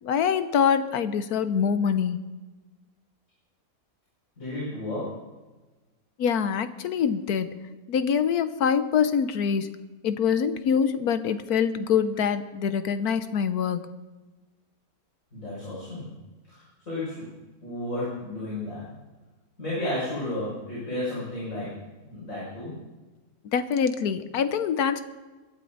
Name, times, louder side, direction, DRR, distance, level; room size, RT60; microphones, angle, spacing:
voice 1, 0.0-2.2 6.2-7.6 7.9-9.7 10.0-13.9 23.5-25.0, left 7 dB, 85° left, 11 dB, 1.4 m, -24 dB
voice 2, 4.4-5.2 15.3-16.1 16.5-17.2 17.6-18.9 19.6-21.7 22.1-22.7, left 1 dB, 65° left, -9 dB, 6.5 m, -32 dB
21.5 x 12.5 x 4.0 m, 1.2 s
omnidirectional pair, 1.6 m